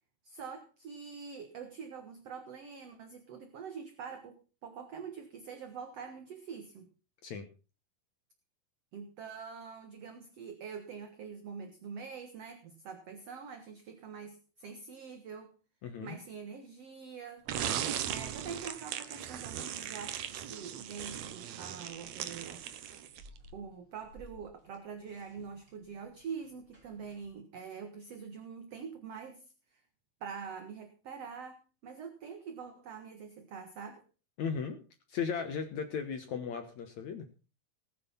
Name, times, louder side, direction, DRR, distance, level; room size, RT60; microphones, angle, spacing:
voice 1, 0.2-6.9 8.9-15.5 16.0-17.4 18.1-22.6 23.5-29.4 29.7-29.8 30.2-34.0, right 6 dB, 55° right, 6 dB, 2.0 m, -45 dB
voice 2, 15.8-16.2 34.4-34.8 35.1-37.3, left 6 dB, 65° left, 7 dB, 2.1 m, -36 dB
sound 1, 17.5-23.4, right 10 dB, 70° right, 1.7 m, -38 dB
sound 2, 19.0-27.3, equal, 25° right, 6.8 m, -61 dB
19.5 x 7.9 x 5.7 m, 0.35 s
omnidirectional pair, 4.5 m